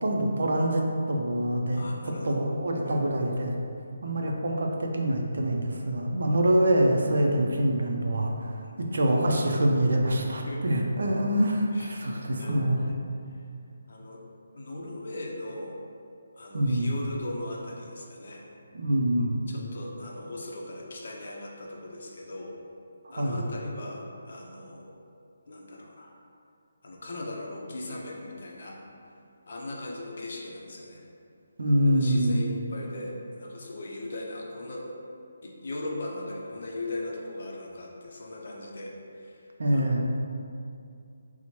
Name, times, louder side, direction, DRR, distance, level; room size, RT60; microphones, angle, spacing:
voice 1, 0.0-1.9 2.2-3.6 4.0-12.8 16.5-16.9 18.7-19.4 23.2-23.5 31.6-32.4 39.6-40.1, right 1 dB, 70° right, 1 dB, 0.4 m, -25 dB
voice 2, 1.7-2.4 2.8-3.0 8.6-8.8 10.1-10.6 11.7-13.0 13.4-13.5 13.9-14.2 14.5-15.8 16.4-18.5 19.5-22.5 23.1-24.9 25.5-26.1 26.8-28.8 29.5-31.0 31.9-34.9 35.4-40.2, left 2 dB, 55° left, -2 dB, 0.5 m, -39 dB
4.2 x 2.0 x 2.9 m, 2.5 s
hypercardioid pair, 170°, 0 cm